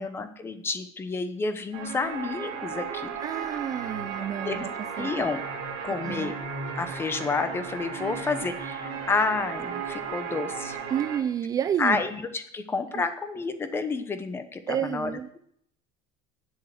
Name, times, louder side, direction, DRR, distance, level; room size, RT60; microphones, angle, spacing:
voice 1, 0.0-3.1 4.4-4.7 5.0-5.4 5.8-6.3 6.8-10.8 11.8-15.4, left 4 dB, 20° left, 10 dB, 0.9 m, -30 dB
sound 1, 1.7-11.2, right 6 dB, 80° right, 2.6 m, -35 dB
voice 2, 3.2-4.7 5.0-5.2 5.9-6.3 10.9-12.0 12.9-13.0 14.7-15.3, right 9 dB, 30° right, 12 dB, 0.4 m, -30 dB
7.6 x 7.5 x 7.7 m, 0.67 s
cardioid pair, 155°, 13 cm